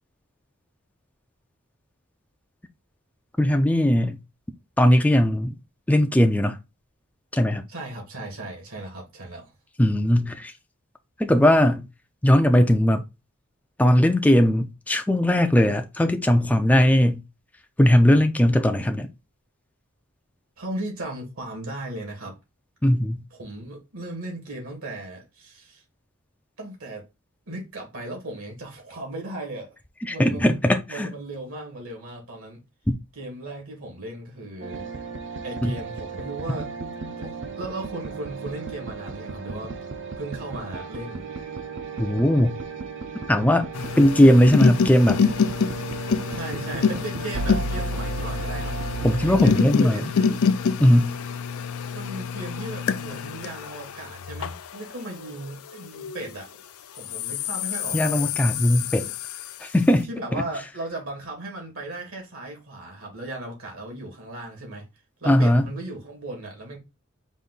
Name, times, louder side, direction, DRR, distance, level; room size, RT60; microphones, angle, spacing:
voice 1, 3.4-4.2 4.8-5.6 5.9-6.6 7.3-7.6 9.8-10.5 11.2-11.9 12.2-13.0 13.8-17.2 17.8-19.1 22.8-23.2 30.1-31.1 35.6-35.7 42.0-42.6 43.3-43.7 44.0-45.2 49.0-50.0 50.8-51.2 57.9-59.1 59.6-60.1 65.3-65.7, left 1 dB, 5° left, 0.4 m, -19 dB
voice 2, 7.7-9.5 20.6-22.4 23.3-25.8 26.6-27.1 27.5-29.7 30.1-32.6 33.2-34.9 35.4-36.7 37.2-39.7 40.2-41.3 46.3-48.8 49.2-50.5 51.9-58.3 60.0-64.9 65.2-66.8, right 1 dB, 75° right, 2.0 m, -36 dB
sound 1, 34.6-49.5, right 4 dB, 60° right, 0.6 m, -34 dB
sound 2, 43.7-56.4 57.0-59.8, left 6 dB, 85° left, 0.5 m, -27 dB
5.1 x 2.6 x 3.8 m
head